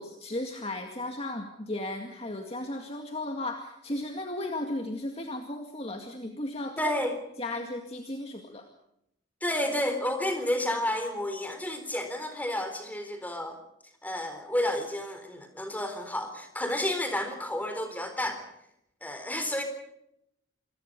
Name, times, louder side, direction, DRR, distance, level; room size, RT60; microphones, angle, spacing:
voice 1, 0.0-6.8 7.4-8.7, left 1 dB, 30° left, 4 dB, 2.1 m, -35 dB
voice 2, 6.8-7.2 9.4-13.6 14.0-18.4 19.0-19.6, left 1 dB, 10° left, 7 dB, 4.1 m, -31 dB
27.5 x 22.5 x 5.3 m, 0.79 s
head